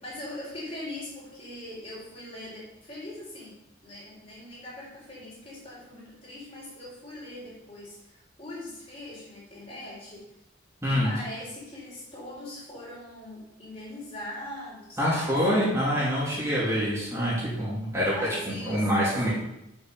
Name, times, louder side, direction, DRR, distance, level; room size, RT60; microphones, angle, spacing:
voice 1, 0.0-3.6 3.8-10.3 10.9-15.6 16.3-17.0 18.1-19.3, left 1 dB, 30° left, -6 dB, 4.2 m, -41 dB
voice 2, 10.8-11.1 15.0-18.1 18.5-19.3, equal, 15° right, -8 dB, 2.6 m, -26 dB
7.9 x 6.2 x 7.0 m, 0.87 s
head